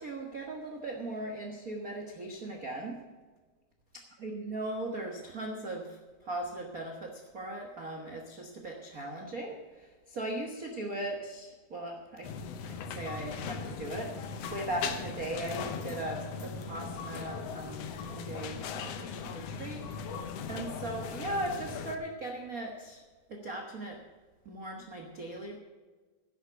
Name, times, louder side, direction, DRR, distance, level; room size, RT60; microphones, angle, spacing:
voice 1, 0.0-3.0 4.2-12.3 12.6-23.0 23.3-24.0 24.4-25.6, right 1 dB, 60° right, 1 dB, 0.9 m, -39 dB
sound 1, 12.2-22.0, left 6 dB, 70° left, 1.5 m, -39 dB
11.0 x 8.3 x 8.0 m, 1.4 s
omnidirectional pair, 3.9 m